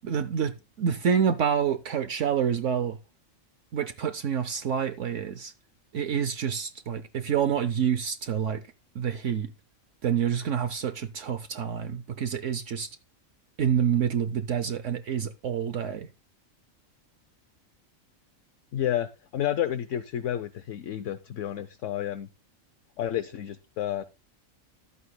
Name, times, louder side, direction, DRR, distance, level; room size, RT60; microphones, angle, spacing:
voice 1, 0.0-3.0 3.7-5.5 5.9-8.6 8.9-9.5 10.0-12.9 13.6-16.1, right 8 dB, 65° right, 1.0 m, -27 dB
voice 2, 18.7-22.3 23.0-24.0, left 11 dB, 70° left, 1.0 m, -30 dB
14.0 x 11.5 x 2.2 m
omnidirectional pair, 1.4 m